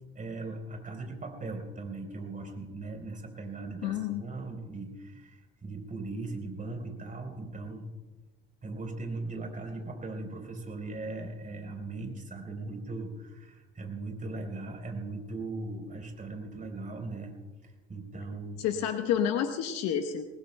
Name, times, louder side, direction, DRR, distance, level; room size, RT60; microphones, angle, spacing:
voice 1, 0.2-7.8 8.6-17.3 17.6-18.6, right 3 dB, 25° right, 3 dB, 4.0 m, -39 dB
voice 2, 3.8-4.2 18.6-20.3, left 9 dB, 60° left, 6 dB, 1.1 m, -29 dB
25.0 x 19.0 x 2.2 m, 1.2 s
hypercardioid pair, 65°, 29 cm